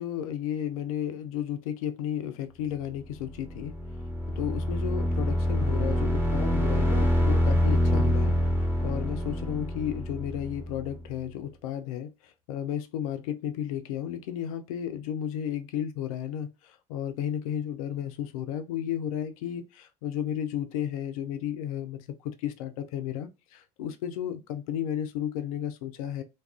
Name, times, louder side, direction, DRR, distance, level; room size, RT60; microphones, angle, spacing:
voice 1, 0.0-3.7 4.4-8.4 8.8-26.2, left 10 dB, 70° left, 0.4 m, -33 dB
sound 1, 3.3-11.0, equal, 10° right, 1.0 m, -26 dB
2.3 x 2.3 x 2.3 m
figure-of-eight pair, 60°, 19 cm